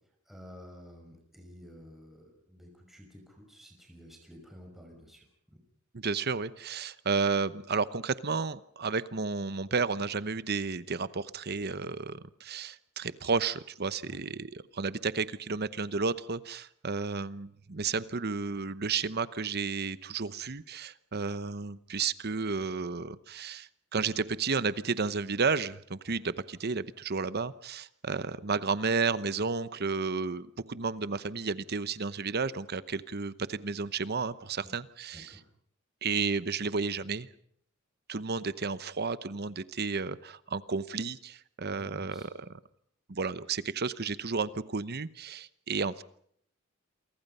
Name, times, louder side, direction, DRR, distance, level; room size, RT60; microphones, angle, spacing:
voice 1, 0.3-5.2 14.1-14.2 26.1-26.2 35.1-35.4 41.7-42.3, equal, ahead, 1 dB, 5.8 m, -51 dB
voice 2, 5.9-35.4 36.0-37.3 38.1-42.5 43.1-46.0, right 4 dB, 50° right, 15 dB, 0.9 m, -32 dB
28.5 x 24.0 x 5.6 m, 0.67 s
head